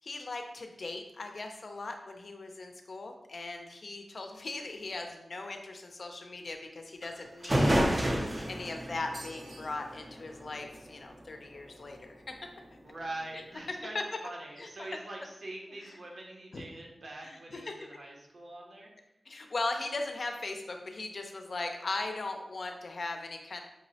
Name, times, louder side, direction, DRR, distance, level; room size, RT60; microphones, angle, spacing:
voice 1, 0.0-7.8 8.5-12.3 13.9-14.0 14.6-14.7 15.8-15.9 16.5-16.6 17.2-17.7 19.3-23.6, left 3 dB, 55° left, 4 dB, 0.4 m, -38 dB
sound 1, 7.0-7.1 7.4-10.9, equal, 25° right, 0.4 m, -30 dB
voice 2, 12.8-18.9, right 2 dB, 65° right, -1 dB, 0.7 m, -43 dB
5.0 x 2.0 x 2.7 m, 0.91 s
wide cardioid pair, 115°, 0 cm